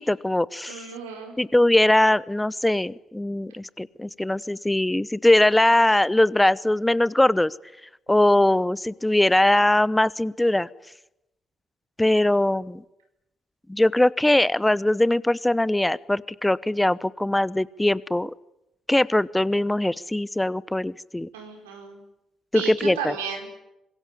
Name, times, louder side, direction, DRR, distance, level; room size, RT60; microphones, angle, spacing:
voice 1, 0.0-0.8 1.4-7.5 8.1-10.7 12.0-12.8 13.7-18.3 18.9-21.3 22.5-23.1, left 1 dB, 10° left, 20 dB, 0.9 m, -21 dB
voice 2, 0.7-1.4 21.3-22.0 22.5-23.5, right 6 dB, 85° right, 3 dB, 4.8 m, -33 dB
25.5 x 22.5 x 9.8 m, 0.91 s
hypercardioid pair, 40°, 0 cm